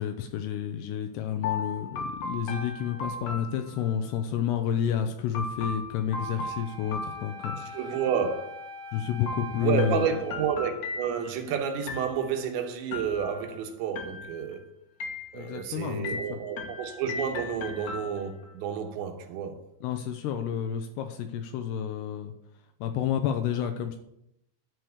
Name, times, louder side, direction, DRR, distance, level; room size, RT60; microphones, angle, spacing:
voice 1, 0.0-7.8 8.9-10.1 15.3-16.4 19.8-22.3 22.8-24.0, left 9 dB, 85° left, 2.5 m, -30 dB
sound 1, 1.4-4.2 5.3-8.4 9.3-11.5 11.9-12.5 12.9-13.6 14.0-14.6 15.0-15.7 16.0-18.5, left 3 dB, 65° left, 1.9 m, -37 dB
Wind instrument woodwind instrument, 6.1-10.5, left 2 dB, 60° right, 2.9 m, -43 dB
voice 2, 7.6-8.6 9.6-14.7 15.3-19.6, right 7 dB, 80° right, 3.3 m, -30 dB
11.0 x 4.6 x 8.0 m
omnidirectional pair, 5.3 m